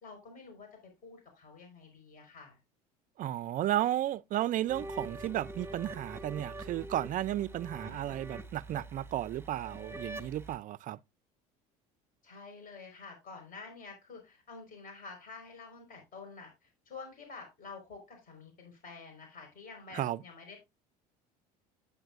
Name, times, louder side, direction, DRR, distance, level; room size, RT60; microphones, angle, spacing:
voice 1, 0.0-0.7 1.0-2.6 7.8-8.2 12.2-20.6, left 4 dB, 45° left, 4.9 m, -49 dB
voice 2, 3.2-11.0 19.9-20.2, right 13 dB, 40° right, 0.4 m, -33 dB
sound 1, 4.7-10.6, right 2 dB, 10° right, 1.2 m, -44 dB
9.5 x 9.0 x 2.5 m
hypercardioid pair, 75°, 20 cm